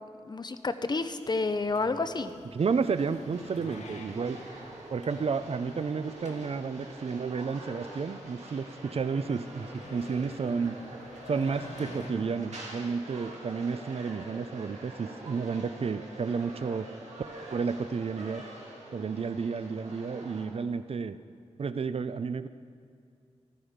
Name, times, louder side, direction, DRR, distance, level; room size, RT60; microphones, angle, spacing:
voice 1, 0.0-2.3, left 3 dB, 40° left, 10 dB, 0.7 m, -30 dB
sound 1, 1.2-12.1, left 2 dB, 85° left, 1.5 m, -49 dB
voice 2, 2.5-4.4 4.9-10.8 11.3-16.9 17.5-18.4 18.9-21.2 21.6-22.5, right 5 dB, 55° right, 13 dB, 0.5 m, -31 dB
sound 2, 2.6-20.4, right 2 dB, 75° right, 2.8 m, -45 dB
15.5 x 13.0 x 5.1 m, 2.3 s
wide cardioid pair, 110°, 12 cm